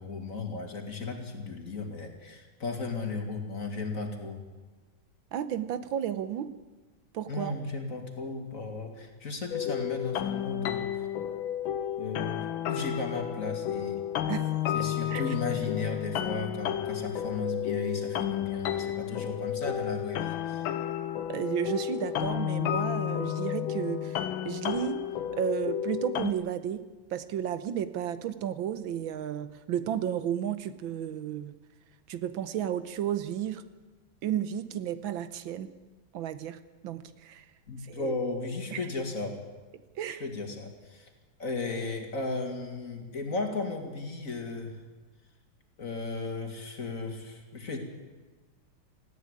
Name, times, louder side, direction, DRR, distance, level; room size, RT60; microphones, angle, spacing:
voice 1, 0.0-4.4 7.3-11.1 12.0-14.0 14.7-20.7 37.7-39.4 40.1-41.1 41.4-44.7 45.8-47.8, left 3 dB, 40° left, 4 dB, 2.8 m, -35 dB
voice 2, 5.3-6.5 7.1-7.5 14.3-14.5 15.1-15.2 21.3-25.0 25.3-26.8 27.1-31.5 32.1-33.6 34.2-35.7 36.1-36.6 36.8-37.5 37.8-38.1 38.7-38.9 40.0-40.2, right 10 dB, 80° right, 13 dB, 1.7 m, -33 dB
sound 1, 9.5-26.3, left 10 dB, 80° left, 1.7 m, -32 dB
18.0 x 15.0 x 9.8 m, 1.3 s
omnidirectional pair, 2.2 m